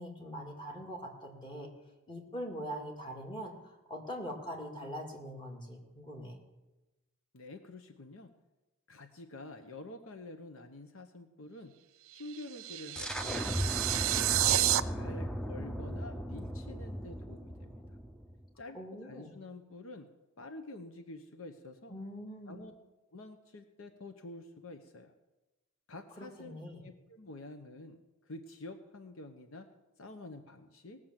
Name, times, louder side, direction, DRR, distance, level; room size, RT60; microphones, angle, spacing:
voice 1, 0.0-1.7 2.1-6.4 18.7-19.4 21.9-22.6 26.2-26.8, equal, 25° left, 1 dB, 2.1 m, -42 dB
voice 2, 7.3-8.3 8.9-11.7 12.1-13.5 13.9-18.0 18.6-18.8 19.0-20.1 20.4-22.0 22.5-22.7 23.1-25.1 25.9-29.7 30.0-31.0, left 2 dB, 70° left, 7 dB, 0.9 m, -48 dB
sound 1, 12.1-14.8, right 14 dB, 70° right, 0.5 m, -30 dB
sound 2, 13.0-18.5, equal, 5° left, 0.6 m, -37 dB
19.0 x 6.6 x 7.4 m, 1.1 s
head